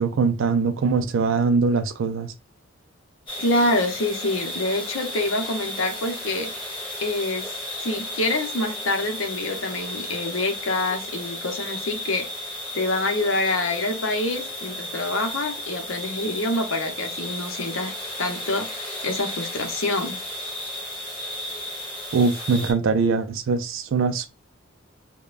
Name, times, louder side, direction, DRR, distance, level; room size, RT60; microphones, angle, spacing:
voice 1, 0.0-2.3 22.1-24.3, right 4 dB, 65° right, 0.4 m, -22 dB
sound 1, 3.3-22.7, left 1 dB, 20° left, 1.7 m, -34 dB
voice 2, 3.4-6.5 7.0-7.5 7.8-12.3 12.7-17.9 18.2-20.2, left 2 dB, 65° left, 0.8 m, -26 dB
5.1 x 2.2 x 2.4 m
head